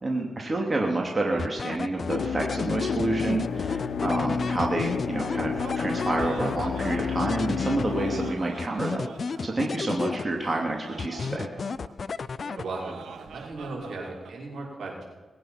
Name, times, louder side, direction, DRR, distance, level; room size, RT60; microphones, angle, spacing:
voice 1, 0.0-9.1 9.4-11.5, right 2 dB, 35° right, 0 dB, 2.6 m, -28 dB
sound 1, 1.4-8.2 8.6-10.6 11.0-13.0, left 5 dB, 60° left, 0.5 m, -33 dB
sound 2, 2.1-8.3, left 6 dB, 85° left, 0.9 m, -31 dB
Laughter, 5.2-14.4, right 6 dB, 90° right, 1.3 m, -44 dB
voice 2, 12.5-15.0, right 3 dB, 70° right, -3 dB, 5.9 m, -37 dB
21.0 x 9.3 x 5.9 m, 1.3 s
cardioid pair, 65°, 0 cm